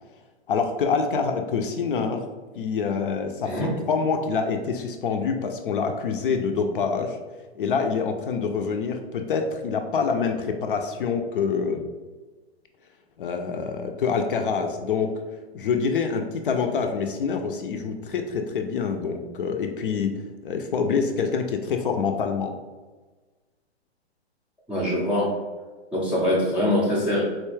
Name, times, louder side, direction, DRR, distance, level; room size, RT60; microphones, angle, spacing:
voice 1, 0.5-2.3 2.6-7.2 7.6-11.8 13.2-15.2 15.5-22.5, left 5 dB, 55° left, 5 dB, 0.5 m, -26 dB
voice 2, 3.4-3.8 24.7-25.3 25.9-27.2, left 1 dB, 5° right, -9 dB, 0.5 m, -23 dB
4.1 x 2.2 x 3.1 m, 1.3 s
hypercardioid pair, 140°, 33 cm